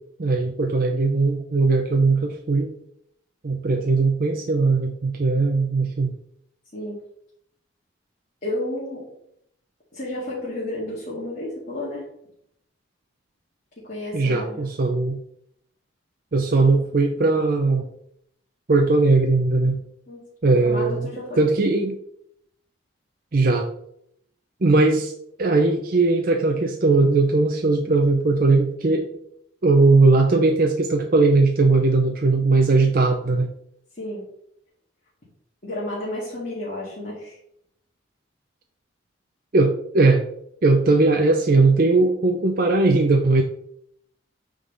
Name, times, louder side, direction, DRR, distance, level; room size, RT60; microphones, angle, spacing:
voice 1, 0.2-2.7 3.4-6.1 14.1-15.2 16.3-17.9 18.7-19.8 20.4-21.1 21.4-21.9 23.3-23.7 24.6-25.1 25.4-29.1 29.6-33.5 39.5-40.2 40.6-43.4, right 3 dB, 45° right, 3 dB, 0.6 m, -19 dB
voice 2, 8.4-9.1 9.9-12.0 13.8-14.6 20.1-20.2 20.5-21.4 33.9-34.3 35.6-37.4, left 1 dB, 45° left, -8 dB, 2.1 m, -31 dB
8.4 x 3.8 x 3.9 m, 0.72 s
head